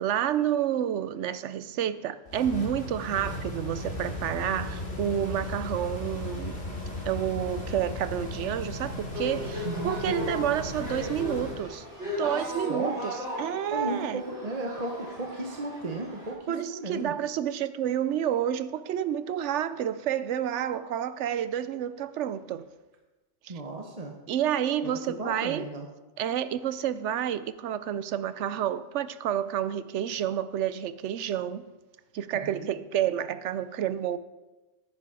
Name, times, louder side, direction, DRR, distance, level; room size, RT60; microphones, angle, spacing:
voice 1, 0.0-6.6 7.1-11.8 12.2-13.1 13.4-14.2 16.5-22.7 23.4-23.5 24.3-25.6 26.2-31.7 32.1-34.2, right 10 dB, 90° right, 1.0 m, -29 dB
sound 1, 2.3-11.6, left 1 dB, 65° left, 2.8 m, -36 dB
sound 2, 9.1-16.3, left 2 dB, 75° right, 3.9 m, -37 dB
voice 2, 9.6-10.3 12.4-13.0 13.7-17.1 23.5-24.1 24.8-25.9 32.3-32.7, right 2 dB, 35° right, 1.1 m, -35 dB
10.0 x 9.8 x 5.0 m
omnidirectional pair, 1.2 m